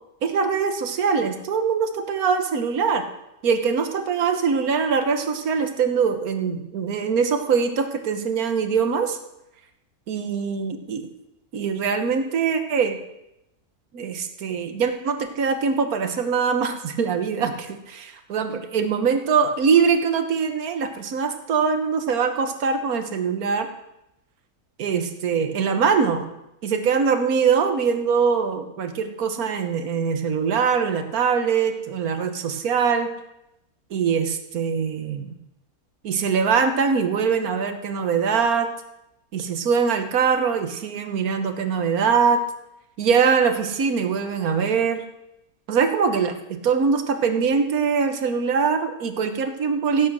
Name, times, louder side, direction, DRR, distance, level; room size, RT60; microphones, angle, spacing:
voice 1, 0.2-3.1 3.4-9.2 10.1-11.1 11.5-13.0 13.9-23.7 24.8-26.3 26.6-33.1 33.9-35.3 36.0-38.7 39.3-42.4 43.0-45.0 45.7-50.1, right 6 dB, 70° right, 8 dB, 1.6 m, -22 dB
16.5 x 8.5 x 6.3 m, 0.88 s
omnidirectional pair, 1.6 m